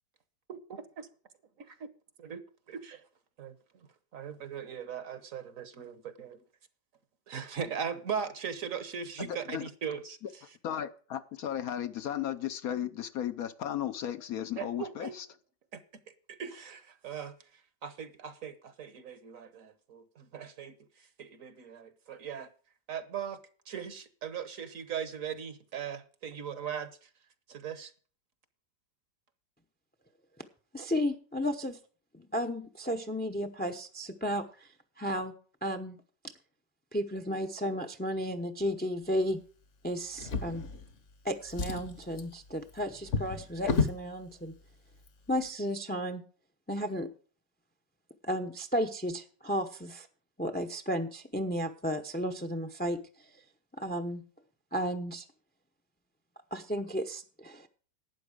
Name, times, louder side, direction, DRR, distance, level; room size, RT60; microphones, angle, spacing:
voice 1, 0.5-1.1 2.2-2.4 2.7-3.0 3.4-3.5 4.1-6.4 7.3-10.2 14.6-15.2 15.7-15.8 16.3-22.5 22.9-23.4 23.7-27.1 27.5-27.9, right 7 dB, 55° right, 1.3 m, -39 dB
voice 2, 9.2-9.7 10.6-15.3, left 10 dB, 65° left, 1.1 m, -35 dB
voice 3, 30.7-31.8 32.1-34.7 35.0-35.3 35.6-36.0 36.9-39.4 39.8-40.6 41.2-44.5 45.3-46.2 46.7-47.1 48.2-50.1 50.4-53.0 53.8-54.2 54.7-55.2 56.5-57.7, equal, 10° left, 0.5 m, -33 dB
Drawer open or close, 40.1-41.1 41.4-44.1 44.9-45.1 45.5-45.6, left 4 dB, 50° left, 1.3 m, -33 dB
12.0 x 9.0 x 5.0 m
omnidirectional pair, 1.8 m